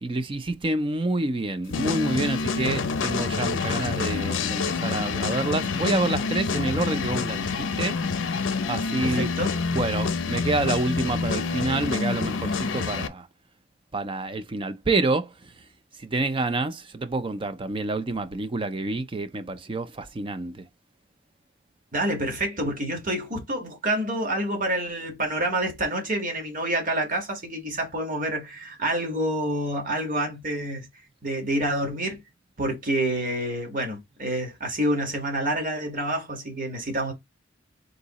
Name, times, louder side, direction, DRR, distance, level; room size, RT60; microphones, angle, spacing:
voice 1, 0.0-8.0 8.2-9.3 9.7-13.3 13.9-15.5 16.0-20.7, right 2 dB, 25° right, 0.5 m, -28 dB
sound 1, 1.7-13.1, left 4 dB, 75° left, 0.6 m, -27 dB
voice 2, 9.0-9.6 21.9-30.9 31.2-32.2 32.6-37.1, right 1 dB, 45° right, 1.5 m, -28 dB
3.9 x 2.7 x 3.9 m
head